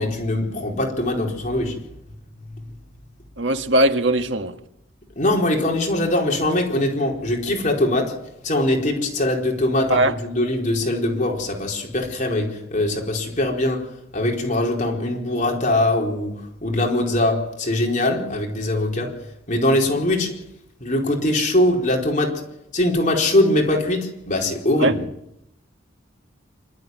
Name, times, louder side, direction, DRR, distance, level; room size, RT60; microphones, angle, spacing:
voice 1, 0.0-1.8 5.2-8.1 8.4-19.1 19.5-20.3 20.8-22.4 22.7-25.0, left 1 dB, 40° left, 4.4 m, -22 dB
voice 2, 3.4-4.5 9.9-10.1 24.8-25.0, right 1 dB, 65° right, 1.7 m, -19 dB
26.5 x 13.5 x 9.4 m
head